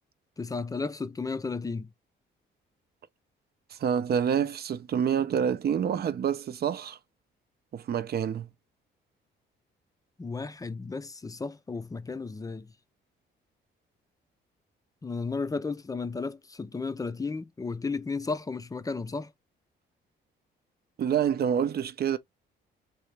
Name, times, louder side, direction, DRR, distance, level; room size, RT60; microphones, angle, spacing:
voice 1, 0.4-1.9 10.2-12.7 15.0-19.3, left 4 dB, 20° left, 0.4 m, -34 dB
voice 2, 3.7-7.0 7.7-8.5 21.0-22.2, right 8 dB, 55° right, 0.5 m, -27 dB
3.4 x 2.8 x 3.2 m
cardioid pair, 90°, 20 cm